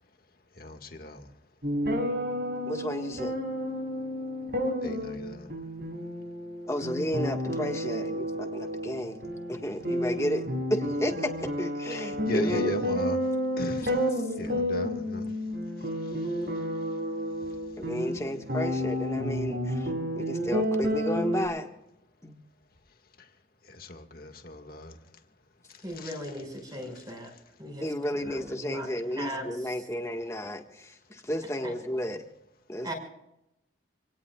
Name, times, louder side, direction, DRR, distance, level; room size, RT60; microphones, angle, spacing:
voice 1, 0.5-1.3 4.8-5.5 11.9-17.0 17.4-17.8 23.2-23.3 23.6-25.2 25.7-26.2 26.9-27.0 27.3-27.4, left 1 dB, 50° left, 1.9 m, -40 dB
sound 1, 1.6-21.5, equal, 60° right, 5.7 m, -31 dB
voice 2, 2.7-3.3 6.7-9.2 9.5-11.1 11.6-12.7 13.9-14.0 17.8-19.9 20.2-21.7 22.2-22.3 27.8-32.2 32.7-32.9, equal, 15° left, 1.6 m, -32 dB
voice 3, 25.8-27.3 27.6-28.9 29.2-29.9 31.6-31.7 32.8-32.9, equal, 20° right, 5.5 m, -38 dB
28.0 x 18.0 x 2.4 m
head